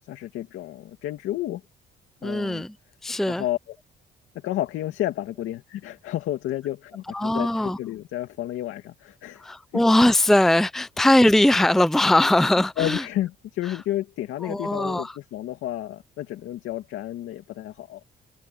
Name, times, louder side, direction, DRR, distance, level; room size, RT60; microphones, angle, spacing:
voice 1, 0.1-1.6 2.2-2.6 3.3-3.8 4.3-9.8 12.8-18.0, left 13 dB, 85° left, 2.4 m, -31 dB
voice 2, 2.2-2.7 3.0-3.4 7.1-7.8 9.4-13.0 14.4-15.1, left 1 dB, ahead, 0.7 m, -20 dB
cardioid pair, 90°, 20 cm